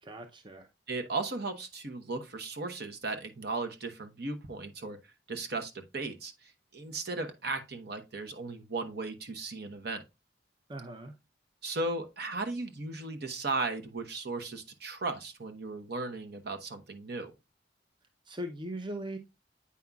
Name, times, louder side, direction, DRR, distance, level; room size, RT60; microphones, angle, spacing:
voice 1, 0.0-0.7 10.7-11.1 18.3-19.2, right 1 dB, 25° right, 0.6 m, -39 dB
voice 2, 0.9-5.0 5.3-10.0 11.6-17.3, right 3 dB, 60° right, 1.0 m, -36 dB
8.4 x 5.4 x 2.3 m
head